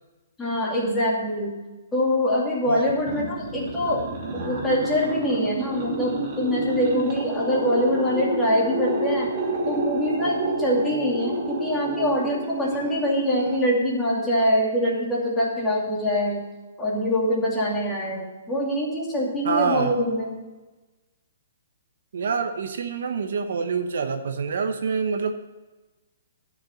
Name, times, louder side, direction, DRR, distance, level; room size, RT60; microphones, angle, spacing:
voice 1, 0.4-1.5 1.9-4.0 4.3-9.3 9.7-16.4 16.8-20.4, equal, 10° left, -5 dB, 2.6 m, -24 dB
sound 1, 2.9-14.0, right 2 dB, 35° right, 2.9 m, -29 dB
voice 2, 19.4-20.0 22.1-25.3, right 5 dB, 70° right, 7 dB, 1.0 m, -26 dB
11.5 x 6.1 x 6.4 m, 1.2 s
hypercardioid pair, 160°, 0 cm